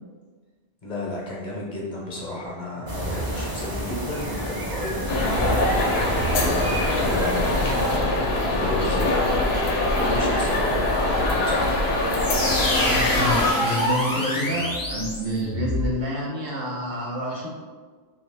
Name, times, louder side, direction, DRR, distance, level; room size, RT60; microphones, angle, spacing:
voice 1, 0.8-6.0 6.4-9.3 10.0-11.8, left 1 dB, 50° left, -4 dB, 0.7 m, -32 dB
sound 1, 2.9-8.0, right 1 dB, 35° right, 0.4 m, -30 dB
sound 2, 5.1-13.5, left 1 dB, 80° left, 0.8 m, -23 dB
sound 3, 12.1-15.9, left 1 dB, 30° left, 0.4 m, -25 dB
voice 2, 12.7-17.5, equal, 70° right, -3 dB, 1.0 m, -28 dB
2.7 x 2.7 x 3.3 m, 1.5 s
omnidirectional pair, 1.0 m